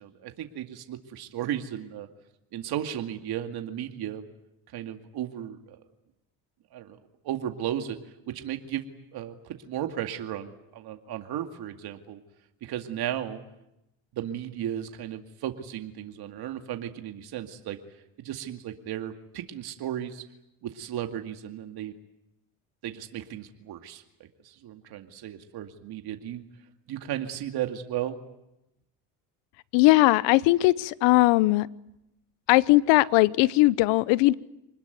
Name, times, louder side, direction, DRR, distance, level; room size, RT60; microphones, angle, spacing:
voice 1, 0.0-2.1 2.5-4.2 4.7-5.8 6.7-7.0 7.2-8.0 8.3-8.9 9.1-12.2 12.6-13.4 14.1-17.8 18.2-20.2 20.6-21.9 22.8-26.5 26.9-28.2, right 11 dB, 60° right, 6 dB, 2.3 m, -35 dB
voice 2, 29.7-31.7 32.5-34.3, left 19 dB, 80° left, 19 dB, 1.0 m, -19 dB
25.5 x 20.5 x 9.5 m, 0.85 s
supercardioid pair, 90°, 43 cm